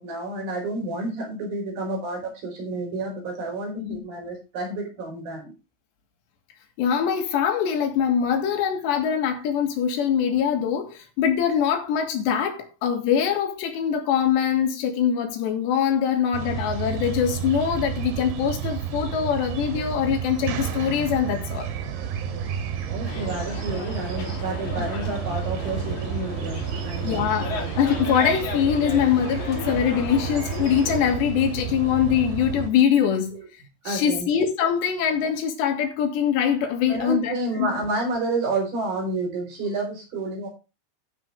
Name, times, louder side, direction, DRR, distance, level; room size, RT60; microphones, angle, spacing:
voice 1, 0.0-5.5 22.9-27.3 33.3-33.4 33.8-34.3 36.9-40.5, right 2 dB, 50° right, 6.4 m, -30 dB
voice 2, 6.8-21.7 24.8-24.9 27.0-33.4 33.9-37.8, left 8 dB, 75° left, 3.9 m, -23 dB
sound 1, 16.3-32.7, right 8 dB, 75° right, 4.3 m, -31 dB
sound 2, 23.0-31.2, left 5 dB, 50° left, 3.1 m, -35 dB
15.0 x 6.1 x 3.6 m
omnidirectional pair, 5.3 m